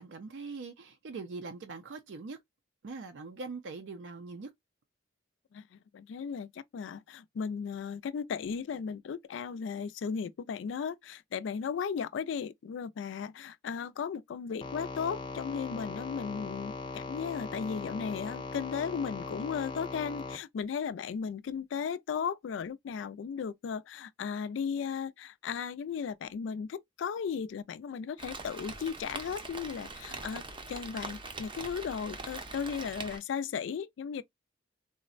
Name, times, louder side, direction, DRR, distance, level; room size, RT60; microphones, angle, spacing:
voice 1, 0.0-2.4 2.8-4.5, right 4 dB, 85° right, 0.4 m, -42 dB
voice 2, 5.5-34.2, left 6 dB, 90° left, 0.3 m, -36 dB
sound 1, 14.6-20.4, left 3 dB, 25° left, 0.4 m, -40 dB
Rain, 28.2-33.2, right 3 dB, 25° right, 0.5 m, -42 dB
3.7 x 2.1 x 2.4 m
head